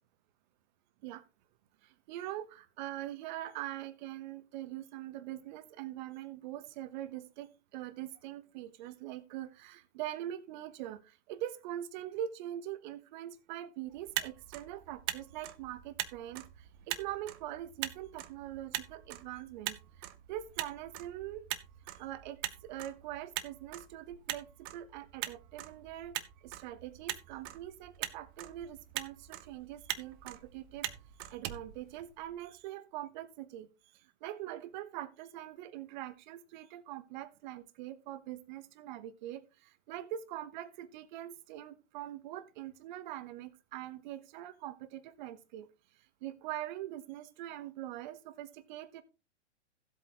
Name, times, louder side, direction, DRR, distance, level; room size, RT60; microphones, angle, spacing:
voice 1, 2.1-16.4 16.9-19.8 20.3-21.5 22.0-26.2 26.4-30.9 31.3-33.7 34.2-45.7 46.2-49.0, right 12 dB, 40° right, 14 dB, 1.1 m, -43 dB
Motor vehicle (road), 13.9-32.5, right 14 dB, 20° right, 0.4 m, -43 dB
15.0 x 8.0 x 2.9 m, 0.29 s
figure-of-eight pair, 120°, 36 cm